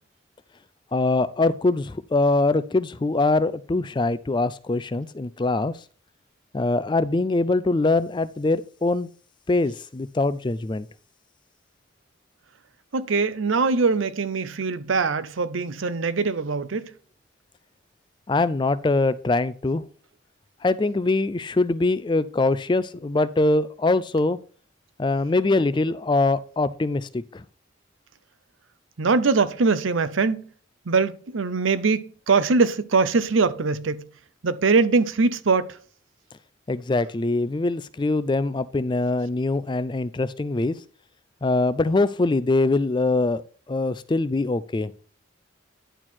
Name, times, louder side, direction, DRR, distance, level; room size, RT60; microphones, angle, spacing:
voice 1, 0.9-5.7 6.5-9.1 9.5-10.9 18.3-19.8 20.6-24.4 25.0-27.5 36.7-40.8 41.4-43.4 43.7-44.9, left 2 dB, 25° left, 0.4 m, -23 dB
voice 2, 12.9-16.9 29.0-30.4 30.9-34.0 34.4-35.8, right 4 dB, 80° right, 0.7 m, -22 dB
10.0 x 4.4 x 4.4 m
head